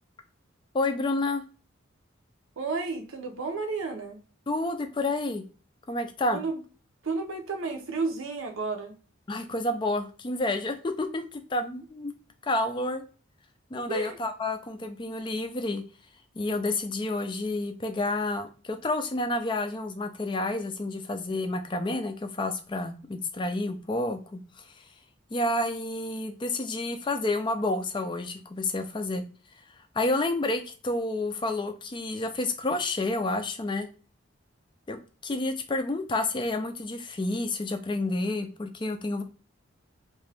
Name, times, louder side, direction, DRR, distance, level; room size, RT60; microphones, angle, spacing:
voice 1, 0.7-1.4 4.5-5.4 5.9-6.4 9.3-11.2 11.5-12.1 12.4-13.0 13.7-15.8 16.4-24.4 24.8-24.9 25.3-29.2 29.9-33.9 34.9-39.2, left 2 dB, 25° left, 7 dB, 0.4 m, -29 dB
voice 2, 2.6-4.2 6.3-6.6 7.0-8.9 13.9-14.2, right 4 dB, 75° right, 4 dB, 0.8 m, -32 dB
2.8 x 2.5 x 3.3 m, 0.37 s
head